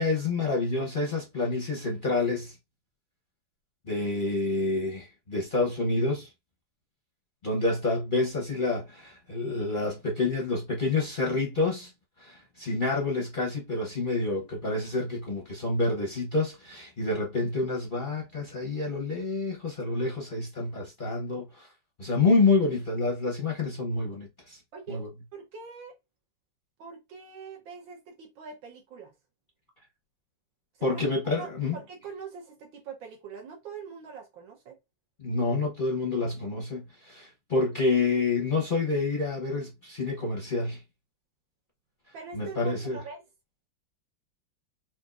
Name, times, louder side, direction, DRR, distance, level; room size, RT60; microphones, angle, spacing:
voice 1, 0.0-2.6 3.9-6.3 7.4-11.9 12.2-21.7 22.0-24.6 24.9-25.1 30.8-31.8 35.2-40.8 42.3-43.0, left 3 dB, 45° left, 0.6 m, -28 dB
voice 2, 24.7-25.0 25.3-25.9 26.8-29.1 30.8-31.0 31.4-34.8 42.1-43.2, right 6 dB, 80° right, 1.8 m, -43 dB
4.4 x 2.6 x 2.4 m
omnidirectional pair, 2.1 m